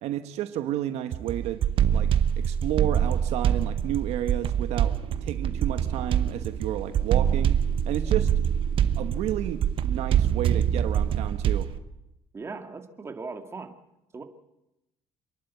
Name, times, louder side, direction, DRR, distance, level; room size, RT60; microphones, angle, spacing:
voice 1, 0.0-1.6 1.9-2.1 2.4-4.9 5.2-7.6 7.9-8.3 9.0-11.7, right 12 dB, 70° right, 9 dB, 1.2 m, -31 dB
sound 1, 1.1-11.8, right 9 dB, 50° right, 1.0 m, -25 dB
sound 2, 4.5-11.1, equal, 75° left, 5.5 m, -49 dB
voice 2, 12.3-13.8 14.1-14.2, right 4 dB, 25° right, 5 dB, 2.2 m, -38 dB
28.0 x 11.5 x 8.4 m, 0.91 s
cardioid pair, 100°, 11 cm